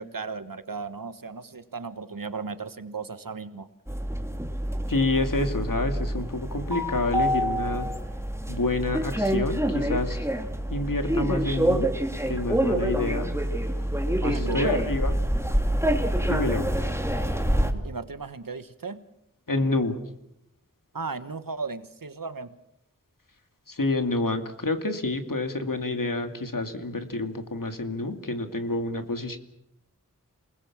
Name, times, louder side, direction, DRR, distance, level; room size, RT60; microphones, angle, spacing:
voice 1, 0.0-3.7 14.2-14.8 17.7-19.0 20.9-22.5, right 4 dB, 90° right, 12 dB, 1.4 m, -35 dB
sound 1, 3.9-17.7, equal, 10° right, 2.4 m, -26 dB
voice 2, 4.9-7.9 8.5-10.2 10.7-11.9 12.3-13.3 14.2-15.1 16.3-16.7 19.5-20.0 23.7-29.4, left 2 dB, 80° left, 7 dB, 2.4 m, -28 dB
28.0 x 20.0 x 7.4 m, 0.81 s
wide cardioid pair, 50°, 33 cm